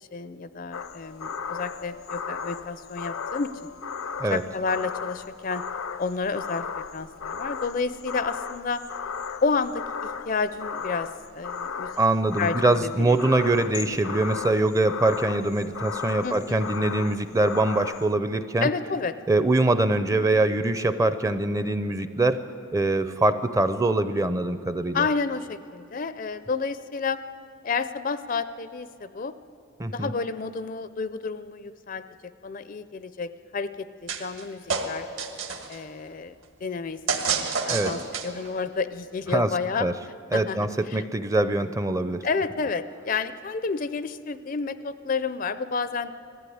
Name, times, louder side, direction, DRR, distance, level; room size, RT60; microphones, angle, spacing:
voice 1, 0.1-3.5 4.3-5.6 6.0-6.7 6.9-8.8 9.4-11.9 12.4-13.3 16.2-16.7 17.0-17.1 18.6-19.2 24.9-27.2 27.6-29.3 29.9-35.1 35.7-36.4 36.6-39.9 40.3-41.0 42.2-46.1, left 4 dB, 40° left, 13 dB, 0.4 m, -30 dB
sound 1, 0.7-18.1, left 6 dB, 80° left, 0.6 m, -35 dB
voice 2, 12.0-18.7 19.3-22.4 22.7-25.1 29.8-30.1 37.7-37.9 39.3-39.5 39.8-39.9 40.3-42.3, right 2 dB, 15° right, 12 dB, 0.5 m, -23 dB
sound 2, 34.1-34.4 34.7-35.8 37.1-38.5, right 5 dB, 65° right, 1.7 m, -28 dB
19.5 x 14.5 x 9.4 m, 2.7 s
head